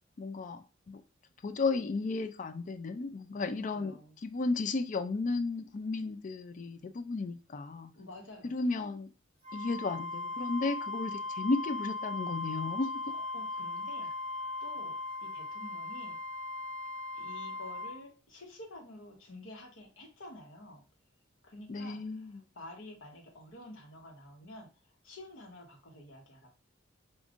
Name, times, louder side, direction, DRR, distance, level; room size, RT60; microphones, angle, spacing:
voice 1, 0.2-1.0 1.4-3.9 4.2-7.9 8.4-9.1 9.5-12.9 21.7-22.4, left 3 dB, 40° left, 0.4 m, -34 dB
voice 2, 3.4-4.2 8.0-8.5 13.1-16.2 17.1-20.8 21.4-26.5, left 1 dB, 80° left, 1.2 m, -50 dB
Wind instrument woodwind instrument, 9.4-18.0, left 2 dB, 25° left, 1.3 m, -38 dB
5.1 x 2.5 x 2.4 m
head